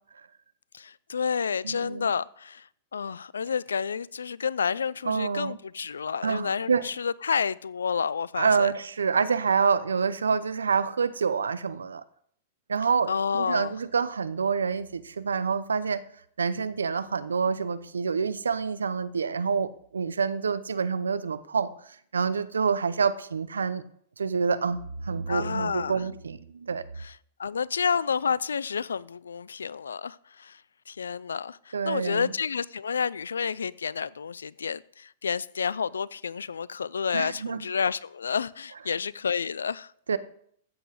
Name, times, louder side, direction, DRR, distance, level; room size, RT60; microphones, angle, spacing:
voice 1, 0.7-2.7 2.9-8.7 13.1-13.7 25.3-26.0 27.0-30.6 30.9-39.9, left 6 dB, 80° left, 0.4 m, -30 dB
voice 2, 1.6-2.1 5.1-5.6 6.2-6.8 8.4-12.0 12.7-16.0 16.4-21.7 22.1-23.8 24.2-26.8 31.7-32.3 37.1-37.6 40.1-40.2, right 5 dB, 80° right, 0.7 m, -27 dB
13.5 x 8.1 x 4.8 m
hypercardioid pair, 105°, 0 cm